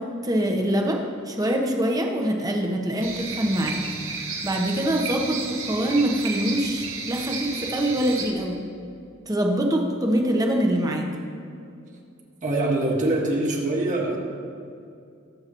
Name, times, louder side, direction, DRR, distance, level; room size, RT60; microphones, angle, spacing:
voice 1, 0.0-3.9 4.4-8.6 9.3-11.1, right 1 dB, 20° right, 2 dB, 1.1 m, -24 dB
sound 1, 3.0-8.2, right 4 dB, 80° right, 1.9 m, -33 dB
voice 2, 12.4-14.2, right 2 dB, 40° right, -2 dB, 1.8 m, -24 dB
21.5 x 7.5 x 3.1 m, 2.4 s
head